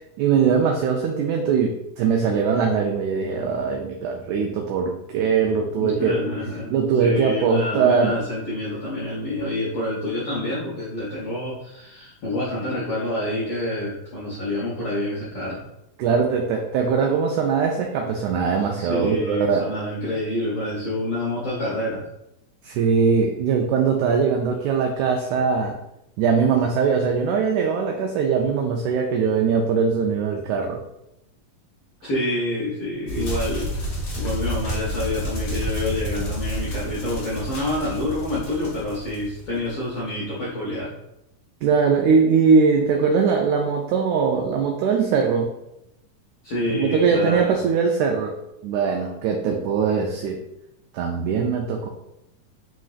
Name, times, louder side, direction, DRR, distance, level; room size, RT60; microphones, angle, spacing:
voice 1, 0.2-6.2 6.7-8.1 16.0-19.6 22.6-25.8 26.2-30.8 41.6-45.5 46.7-48.4 48.6-50.4 50.9-51.9, right 5 dB, 85° right, 2 dB, 1.7 m, -21 dB
voice 2, 5.8-15.6 18.8-22.0 32.0-33.9 34.2-40.9 46.4-47.6, left 1 dB, 75° left, -7 dB, 1.3 m, -27 dB
sound 1, 33.1-39.9, equal, 45° left, 1.3 m, -30 dB
5.1 x 3.7 x 2.4 m, 0.83 s
omnidirectional pair, 3.9 m